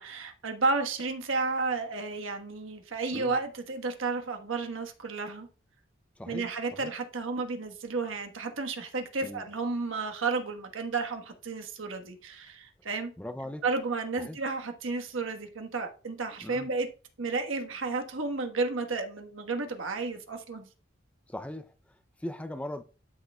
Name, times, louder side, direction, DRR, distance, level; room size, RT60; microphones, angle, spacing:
voice 1, 0.0-5.5 6.3-13.1 13.6-16.9 17.2-20.7, right 3 dB, 90° right, 1.3 m, -32 dB
voice 2, 6.2-6.9 9.2-9.5 13.2-13.6 14.2-14.4 16.4-16.7 21.3-22.8, left 1 dB, 5° left, 0.4 m, -40 dB
12.0 x 6.6 x 2.3 m
head